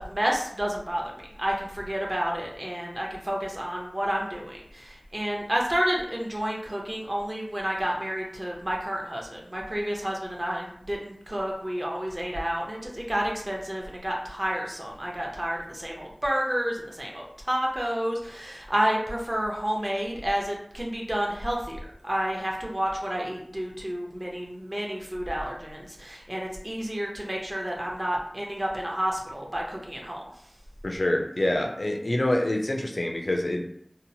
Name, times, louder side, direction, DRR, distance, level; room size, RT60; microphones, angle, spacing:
voice 1, 0.0-30.3, equal, 40° right, -1 dB, 0.6 m, -30 dB
voice 2, 30.8-33.7, left 1 dB, 80° left, 2 dB, 0.4 m, -26 dB
2.8 x 2.0 x 2.7 m, 0.68 s
wide cardioid pair, 40°, 0 cm